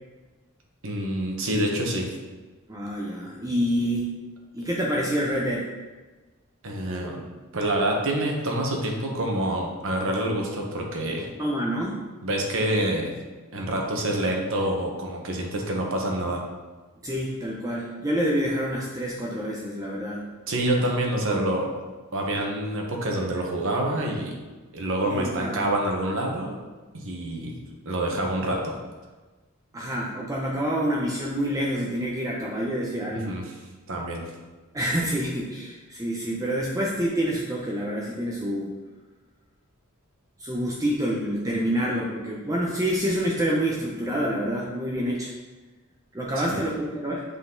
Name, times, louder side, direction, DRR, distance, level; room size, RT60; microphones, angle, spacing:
voice 1, 0.8-2.1 6.6-7.2 7.5-11.3 12.2-13.1 13.5-16.4 20.5-21.7 22.1-24.4 24.7-26.6 26.9-27.6 27.8-28.7 33.1-33.4 33.9-34.2 46.4-46.6, right 1 dB, 65° right, 0 dB, 1.2 m, -27 dB
voice 2, 2.7-4.1 4.5-5.7 11.4-12.0 17.0-20.3 21.3-21.5 25.1-25.7 29.7-33.4 34.7-38.7 40.4-45.3 46.1-47.2, equal, 15° right, -3 dB, 0.6 m, -27 dB
8.2 x 4.0 x 3.9 m, 1.3 s
head